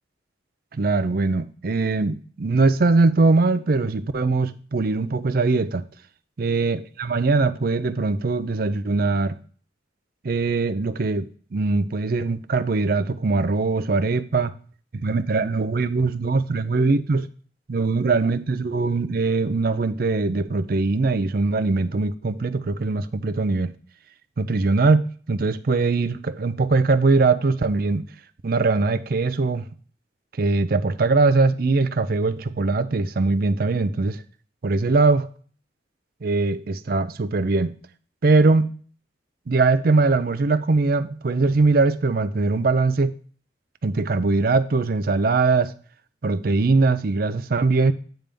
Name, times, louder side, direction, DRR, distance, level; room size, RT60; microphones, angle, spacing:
voice 1, 0.7-5.8 6.4-9.4 10.2-14.5 15.0-17.3 17.7-23.7 24.4-25.0 25.3-28.0 28.4-29.7 30.4-34.2 34.6-35.3 36.2-37.7 38.2-38.7 39.5-43.1 43.8-45.7 46.2-47.9, right 3 dB, 55° right, 0.5 m, -21 dB
9.0 x 3.4 x 5.2 m
head